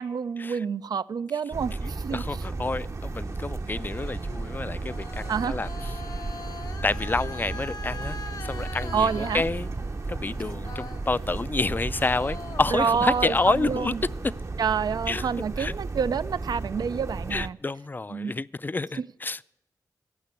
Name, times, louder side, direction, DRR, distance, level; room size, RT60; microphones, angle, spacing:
voice 1, 0.0-2.2 5.3-5.5 8.9-9.4 12.7-14.0 14.6-17.6 18.1-18.3, right 6 dB, 70° right, 0.4 m, -28 dB
sound 1, 1.5-17.5, right 3 dB, 45° right, 0.7 m, -34 dB
voice 2, 1.8-5.7 6.8-9.7 10.1-13.9 14.2-14.3 15.1-15.3 15.6-15.7 17.3-19.4, left 3 dB, 25° left, 0.4 m, -29 dB
sound 2, 3.4-11.7 12.0-14.6, left 4 dB, 65° left, 0.7 m, -43 dB
15.0 x 5.8 x 8.3 m
cardioid pair, 45°, 7 cm